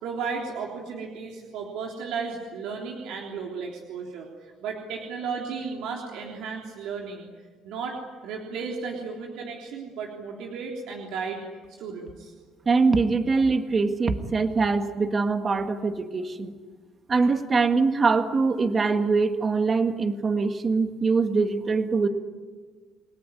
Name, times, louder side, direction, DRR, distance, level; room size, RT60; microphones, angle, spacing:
voice 1, 0.0-7.3 7.6-11.4 11.8-12.3, right 5 dB, 80° right, -1 dB, 3.6 m, -34 dB
voice 2, 12.7-16.5 17.1-22.1, right 4 dB, 30° right, 7 dB, 1.8 m, -23 dB
30.0 x 18.0 x 9.8 m, 1.5 s
cardioid pair, 120°, 0 cm